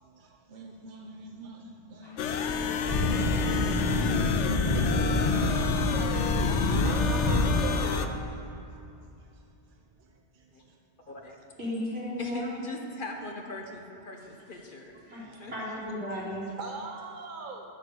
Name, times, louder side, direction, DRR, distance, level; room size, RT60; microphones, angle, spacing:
voice 1, 0.5-1.6 1.9-2.8 5.0-5.1 6.8-8.2 16.6-17.6, right 3 dB, 50° right, 1 dB, 0.9 m, -41 dB
sound 1, 2.1-2.2 2.4-7.6, left 1 dB, 25° left, 1.1 m, -27 dB
sound 2, 2.2-8.1, left 6 dB, 80° left, 1.0 m, -30 dB
voice 2, 11.1-11.5 12.2-14.9 15.4-15.5, left 2 dB, 50° left, 2 dB, 1.1 m, -40 dB
voice 3, 11.6-12.6 15.0-16.4, left 1 dB, 80° right, -9 dB, 3.7 m, -35 dB
11.5 x 7.3 x 6.8 m, 2.6 s
omnidirectional pair, 1.2 m